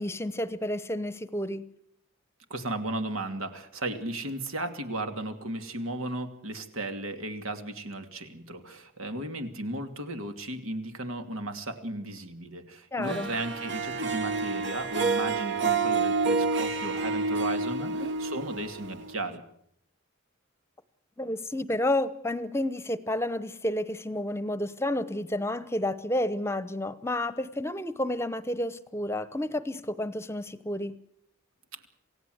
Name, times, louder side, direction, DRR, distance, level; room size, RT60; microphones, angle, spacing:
voice 1, 0.0-1.6 12.9-13.3 17.8-18.1 21.2-31.0, left 1 dB, 10° left, 15 dB, 0.9 m, -30 dB
voice 2, 2.5-19.4 31.7-31.8, right 2 dB, 85° right, 7 dB, 2.7 m, -35 dB
Harp, 13.1-19.3, right 4 dB, 55° right, 1.3 m, -29 dB
28.0 x 16.5 x 8.0 m, 0.71 s
head